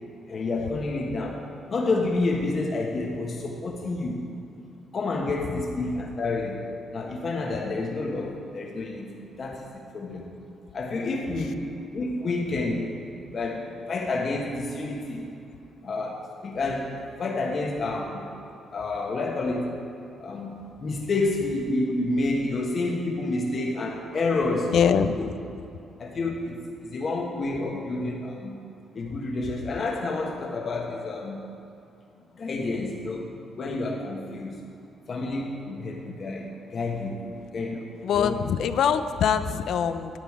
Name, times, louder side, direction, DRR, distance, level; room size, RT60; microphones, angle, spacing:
voice 1, 0.3-1.4 1.7-4.2 4.9-6.6 6.9-9.1 9.4-9.6 9.9-10.2 10.7-11.6 11.9-12.9 13.2-15.2 15.8-16.9 17.2-18.2 18.7-19.8 20.2-20.5 20.8-24.7 25.2-25.3 26.0-28.5 28.9-31.4 32.4-34.5 35.1-37.2 37.5-37.8 38.1-38.4, left 2 dB, 45° left, 0 dB, 1.3 m, -29 dB
voice 2, 24.7-25.3 38.0-40.2, left 7 dB, 70° left, 10 dB, 0.5 m, -23 dB
10.5 x 8.3 x 4.8 m, 2.7 s
cardioid pair, 90°, 0 cm